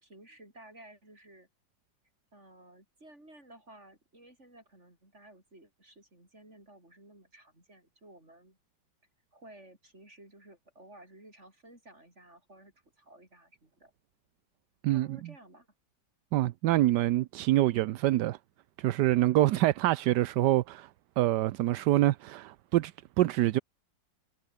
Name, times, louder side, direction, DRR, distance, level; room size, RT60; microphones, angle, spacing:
voice 1, 0.0-1.5 2.3-8.6 9.3-13.9 14.9-15.7, right 1 dB, 35° right, 8.5 m, -55 dB
voice 2, 14.8-15.2 16.3-18.4 18.8-20.9 21.2-23.6, right 15 dB, 70° right, 1.2 m, -26 dB
omnidirectional pair, 2.0 m